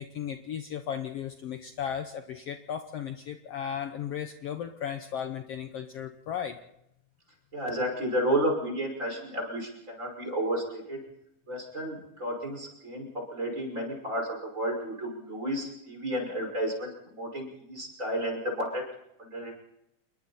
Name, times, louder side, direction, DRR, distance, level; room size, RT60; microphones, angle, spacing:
voice 1, 0.0-6.6, left 8 dB, 65° left, 7 dB, 1.8 m, -35 dB
voice 2, 7.5-11.0 11.5-18.8 19.2-19.5, right 1 dB, 25° right, 1 dB, 5.9 m, -32 dB
29.0 x 21.5 x 4.3 m, 0.81 s
omnidirectional pair, 3.5 m